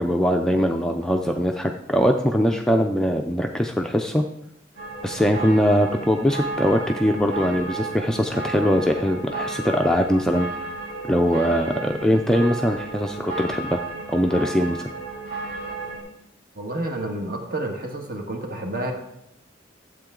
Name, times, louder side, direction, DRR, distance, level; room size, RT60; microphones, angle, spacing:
voice 1, 0.0-4.2 5.0-10.5 11.1-13.8 14.1-14.9, equal, 5° left, 3 dB, 0.4 m, -21 dB
sound 1, 4.7-16.0, right 3 dB, 85° right, 3.5 m, -33 dB
voice 2, 16.6-18.9, right 1 dB, 45° right, 2 dB, 1.6 m, -29 dB
12.0 x 7.9 x 3.8 m, 0.79 s
head